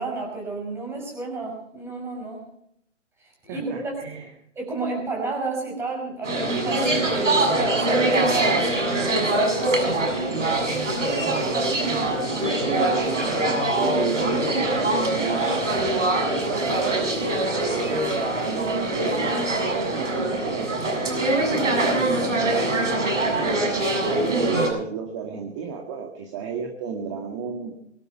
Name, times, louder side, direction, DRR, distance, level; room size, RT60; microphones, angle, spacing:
voice 1, 0.0-2.4 3.4-3.9 4.6-10.1, right 3 dB, 5° right, 0 dB, 5.6 m, -31 dB
voice 2, 3.5-4.3 10.9-15.7 16.3-17.2 17.5-22.7 23.4-27.8, right 6 dB, 25° right, 3 dB, 2.0 m, -32 dB
sound 1, 6.2-24.7, right 2 dB, 80° right, 6.9 m, -23 dB
23.5 x 12.0 x 4.5 m, 0.72 s
hypercardioid pair, 150°, 37 cm